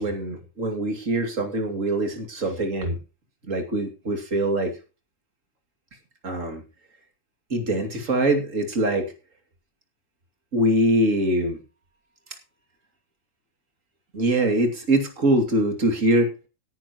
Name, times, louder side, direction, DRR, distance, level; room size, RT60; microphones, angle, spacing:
voice 1, 0.0-3.0 3.5-4.8 6.2-6.6 7.5-9.1 10.5-11.6 14.1-16.3, right 1 dB, 40° right, 5 dB, 2.8 m, -23 dB
17.5 x 10.0 x 3.0 m, 0.31 s
omnidirectional pair, 2.1 m